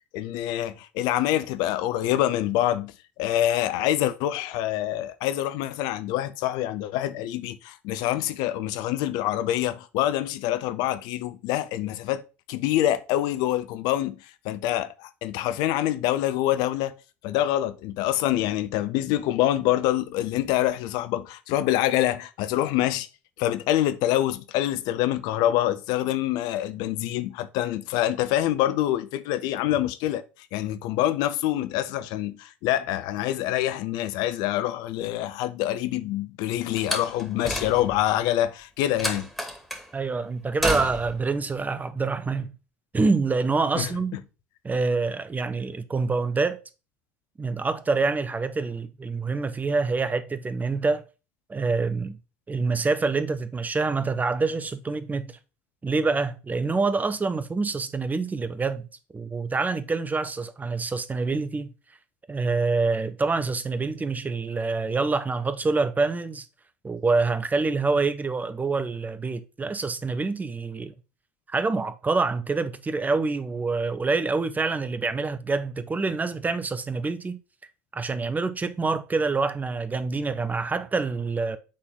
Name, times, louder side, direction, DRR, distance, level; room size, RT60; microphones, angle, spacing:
voice 1, 0.1-2.9 3.2-12.2 12.5-14.2 14.4-16.9 17.2-23.1 23.4-30.2 30.5-39.3 43.8-44.2, left 13 dB, 60° left, 0.6 m, -26 dB
Slam, 36.8-38.1 39.0-39.9 40.6-41.2, left 1 dB, ahead, 2.3 m, -30 dB
voice 2, 39.9-42.6 42.9-44.2 44.6-46.6 47.4-51.0 51.5-52.2 52.5-55.4 55.8-58.9 59.1-61.7 62.3-66.4 66.8-70.9 71.5-77.4 77.9-81.6, right 4 dB, 20° right, 0.8 m, -26 dB
8.5 x 3.9 x 3.7 m
hypercardioid pair, 65°, 8 cm